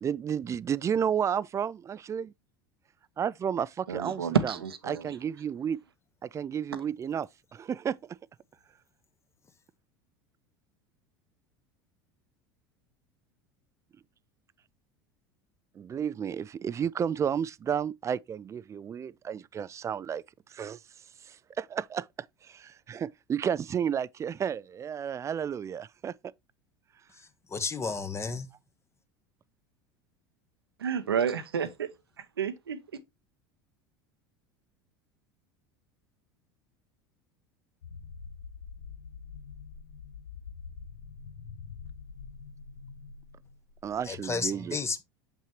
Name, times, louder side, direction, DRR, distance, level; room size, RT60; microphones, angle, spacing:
voice 1, 0.0-2.3 3.2-4.5 4.9-5.8 6.2-8.0 15.8-20.2 20.5-20.8 21.2-22.1 22.4-26.1 31.1-31.2 43.8-44.8, right 8 dB, 25° right, 0.3 m, -32 dB
voice 2, 3.9-5.2 30.8-31.9 32.2-32.8, right 7 dB, 90° right, 0.8 m, -30 dB
voice 3, 27.1-28.5 44.0-45.0, left 4 dB, 20° left, 1.1 m, -33 dB
sound 1, 37.8-44.1, left 5 dB, 80° left, 0.8 m, -45 dB
7.3 x 5.6 x 2.9 m
hypercardioid pair, 80°, 12 cm